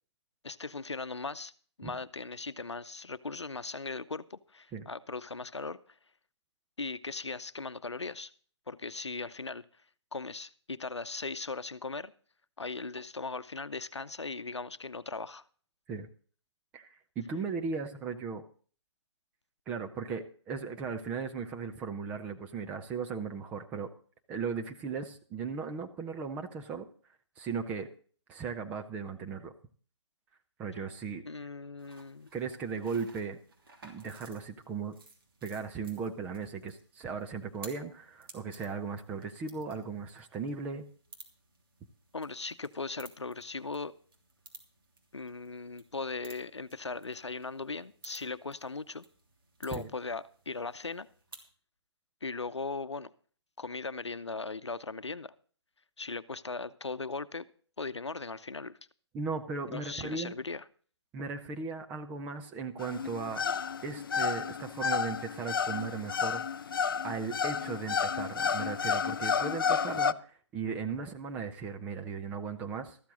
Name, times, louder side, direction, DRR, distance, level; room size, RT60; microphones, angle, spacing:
voice 1, 0.4-1.5 1.8-5.8 6.8-8.3 8.7-9.6 10.1-12.1 12.6-15.4 31.2-32.3 42.1-43.9 45.1-49.0 49.6-51.1 52.2-53.1 53.6-55.3 56.0-57.4 57.8-58.8 59.7-60.6, left 3 dB, 70° left, 14 dB, 0.8 m, -38 dB
voice 2, 16.7-18.4 19.7-23.9 24.3-26.9 27.4-27.9 28.3-29.5 30.6-31.2 32.3-33.4 33.8-34.9 35.4-40.8 49.7-49.9 59.1-60.4 61.1-63.4 63.8-66.4 67.0-73.0, right 5 dB, 10° right, 5 dB, 0.7 m, -37 dB
sound 1, 31.8-51.5, right 3 dB, 50° right, 3.0 m, -56 dB
sound 2, 62.8-70.1, left 6 dB, 50° left, 0.5 m, -31 dB
13.5 x 13.0 x 3.8 m, 0.43 s
figure-of-eight pair, 140°, 15 cm